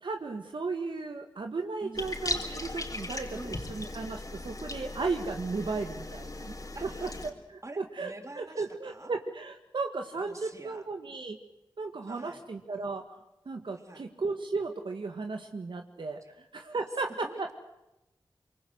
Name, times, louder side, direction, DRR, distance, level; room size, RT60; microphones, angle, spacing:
voice 1, 0.0-6.6 6.8-8.1 8.4-11.4 11.8-13.1 13.5-17.3, right 3 dB, 75° right, 4 dB, 1.9 m, -35 dB
voice 2, 1.8-2.1 3.3-3.6 5.6-5.8 6.7-7.2 7.6-9.1 10.2-10.9 12.0-12.4 13.7-14.1 16.2-16.3 17.2-17.5, right 2 dB, 40° right, 5 dB, 3.9 m, -47 dB
sound 1, 1.9-7.3, left 2 dB, 45° left, 4.2 m, -38 dB
25.5 x 23.5 x 8.1 m, 0.95 s
cardioid pair, 45°, 8 cm